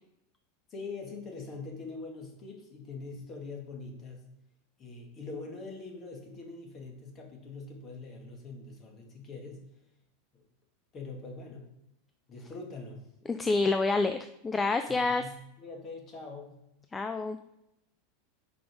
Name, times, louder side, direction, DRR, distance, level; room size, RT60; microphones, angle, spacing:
voice 1, 0.7-4.3 4.8-9.6 10.3-10.4 10.9-11.7 12.3-13.1 14.9-16.6, left 3 dB, 35° left, 1 dB, 1.9 m, -43 dB
voice 2, 13.3-14.2 14.4-15.2 16.9-17.4, left 3 dB, 15° left, 8 dB, 0.4 m, -27 dB
5.1 x 5.1 x 4.7 m, 0.84 s
hypercardioid pair, 110°, 0 cm